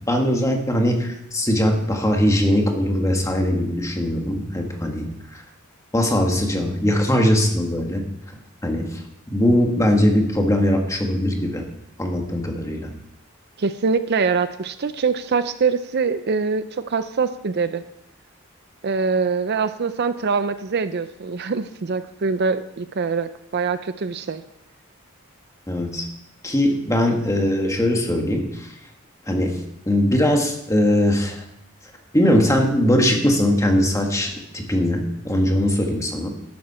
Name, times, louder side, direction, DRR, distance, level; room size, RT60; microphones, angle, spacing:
voice 1, 0.0-5.4 5.9-8.1 8.6-9.0 9.3-11.7 12.0-12.9 25.7-26.1 26.4-28.7 29.3-29.6 29.9-31.4 32.1-36.3, left 1 dB, 15° left, 2 dB, 1.8 m, -20 dB
voice 2, 13.6-17.8 18.8-24.4, right 5 dB, 50° right, 11 dB, 0.5 m, -24 dB
12.5 x 11.5 x 4.3 m, 0.81 s
head